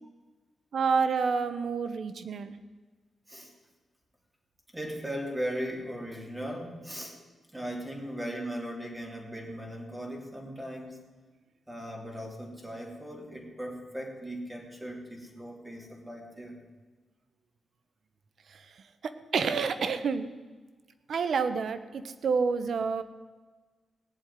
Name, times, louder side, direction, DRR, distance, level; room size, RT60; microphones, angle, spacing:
voice 1, 0.7-2.5 18.5-18.6 19.0-20.3 21.1-23.0, right 5 dB, 70° right, 11 dB, 1.1 m, -28 dB
voice 2, 4.7-7.2 7.5-11.0 11.7-16.6, equal, 15° right, 0 dB, 3.5 m, -38 dB
18.0 x 7.6 x 9.5 m, 1.3 s
cardioid pair, 85°, 0 cm